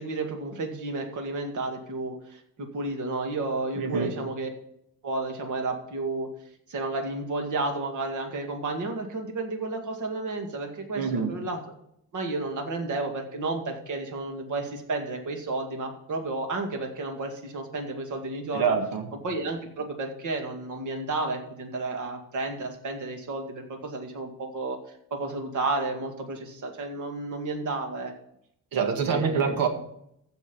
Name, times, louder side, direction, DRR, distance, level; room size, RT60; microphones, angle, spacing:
voice 1, 0.0-4.5 5.0-6.3 6.7-11.6 12.1-18.7 19.2-24.8 25.1-28.1 29.0-29.6, right 2 dB, 60° right, 4 dB, 2.2 m, -32 dB
voice 2, 3.8-4.1 11.0-11.3 18.5-19.1 28.7-29.7, right 6 dB, 80° right, 6 dB, 1.9 m, -25 dB
15.0 x 5.5 x 5.4 m, 0.74 s
wide cardioid pair, 155°, 34 cm